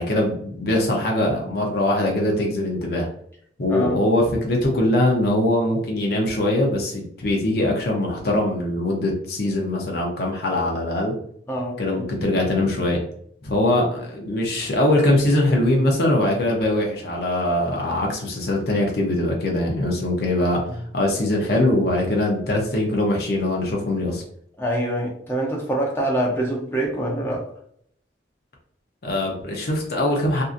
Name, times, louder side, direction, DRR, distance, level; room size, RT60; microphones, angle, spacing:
voice 1, 0.0-3.1 3.6-11.1 11.8-13.0 13.4-24.2 29.0-30.4, left 1 dB, 60° left, -1 dB, 0.6 m, -22 dB
voice 2, 11.5-11.8 24.6-27.4, right 1 dB, 15° left, -2 dB, 0.6 m, -25 dB
2.7 x 2.4 x 2.4 m, 0.66 s
head